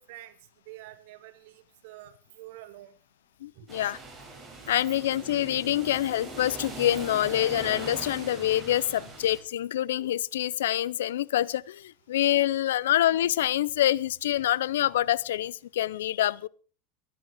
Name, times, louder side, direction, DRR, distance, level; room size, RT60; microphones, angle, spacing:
voice 1, 0.7-2.9 3.6-3.7 8.9-9.1, right 15 dB, 70° right, 2.5 m, -47 dB
voice 2, 3.4-4.0 4.7-16.5, left 13 dB, 85° left, 0.6 m, -26 dB
sound 1, 3.7-9.4, right 3 dB, 15° right, 7.8 m, -41 dB
20.5 x 10.5 x 4.9 m
supercardioid pair, 115°, 0 cm